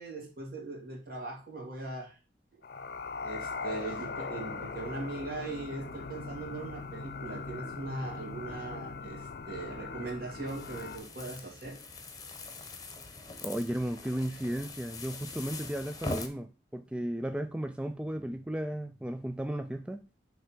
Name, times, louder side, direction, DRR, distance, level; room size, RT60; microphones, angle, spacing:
voice 1, 0.0-2.2 3.2-11.8, right 2 dB, 55° right, 0 dB, 2.4 m, -40 dB
sound 1, 2.6-11.0, left 4 dB, 60° left, 0.6 m, -40 dB
sound 2, 10.5-16.3, left 2 dB, 20° left, 0.9 m, -42 dB
voice 2, 13.4-20.0, right 1 dB, 5° right, 7 dB, 0.3 m, -35 dB
6.6 x 3.3 x 5.9 m, 0.32 s
head